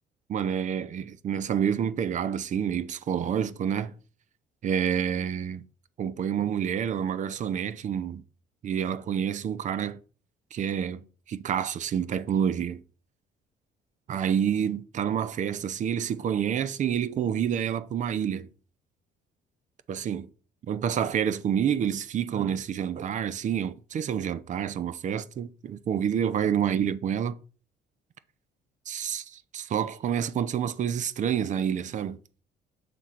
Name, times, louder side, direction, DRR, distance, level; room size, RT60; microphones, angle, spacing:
voice 1, 0.3-3.9 4.6-5.6 6.0-8.2 8.6-10.0 10.5-12.8 14.1-18.5 19.9-20.3 20.7-27.4 28.9-32.2, right 8 dB, 45° right, 0.6 m, -28 dB
6.8 x 3.7 x 5.8 m
cardioid pair, 110°, 17 cm